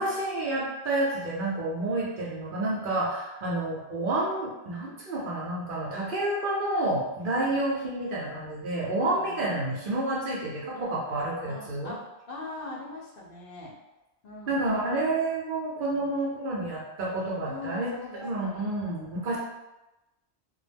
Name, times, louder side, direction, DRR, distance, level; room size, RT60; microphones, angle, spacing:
voice 1, 0.0-11.9 14.5-17.9 18.2-19.4, right 2 dB, 55° right, -5 dB, 0.7 m, -29 dB
voice 2, 9.0-9.5 10.7-11.0 11.4-13.8 14.2-14.6 15.9-16.1 17.4-18.7 19.1-19.4, left 2 dB, 60° left, -4 dB, 0.7 m, -42 dB
2.2 x 2.0 x 3.3 m, 0.99 s
omnidirectional pair, 1.1 m